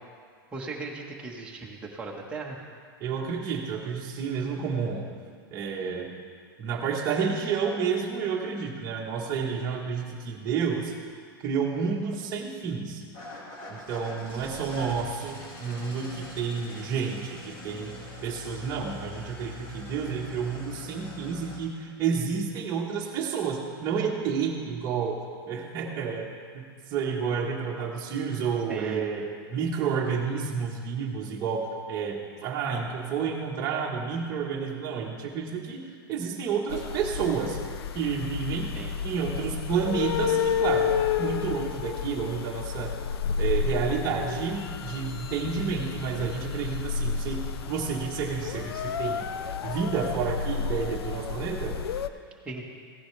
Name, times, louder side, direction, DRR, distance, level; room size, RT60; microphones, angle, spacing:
voice 1, 0.5-2.6 28.7-29.0 38.7-38.9 52.4-52.6, right 3 dB, 10° right, -2 dB, 1.3 m, -37 dB
voice 2, 3.0-5.1 5.5-6.1 6.6-10.9 11.4-13.0 13.7-25.2 25.5-35.8 36.1-37.6 37.9-38.7 39.0-42.9 43.4-47.4 47.7-49.3 49.6-51.8, right 6 dB, 25° right, -4 dB, 1.2 m, -30 dB
Engine starting / Idling, 13.1-21.6, left 2 dB, 30° left, 2.0 m, -42 dB
sound 1, 36.7-52.1, left 7 dB, 85° left, 0.5 m, -31 dB
16.0 x 10.0 x 3.3 m, 2.1 s
supercardioid pair, 155°, 13 cm